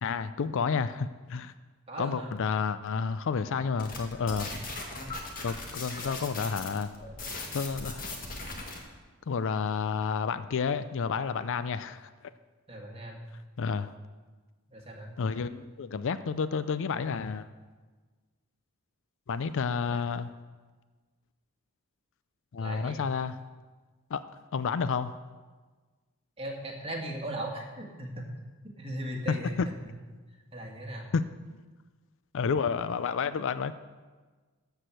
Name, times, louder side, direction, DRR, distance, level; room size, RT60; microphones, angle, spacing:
voice 1, 0.0-1.5 2.0-4.5 5.4-6.9 7.5-8.0 9.3-12.0 13.6-13.9 15.2-17.5 19.3-20.3 22.5-23.4 24.1-24.2 24.5-25.2 29.3-29.7 31.1-31.6 32.3-33.7, left 5 dB, 60° left, 13 dB, 0.4 m, -30 dB
voice 2, 1.9-2.3 6.0-6.2 12.7-13.3 14.7-15.1 19.8-20.0 22.6-23.0 26.4-28.3 28.8-29.9 30.5-31.1, right 1 dB, 25° right, 0 dB, 1.8 m, -38 dB
sound 1, 3.8-8.8, left 2 dB, 40° left, 1.7 m, -38 dB
13.0 x 4.8 x 7.6 m, 1.3 s
head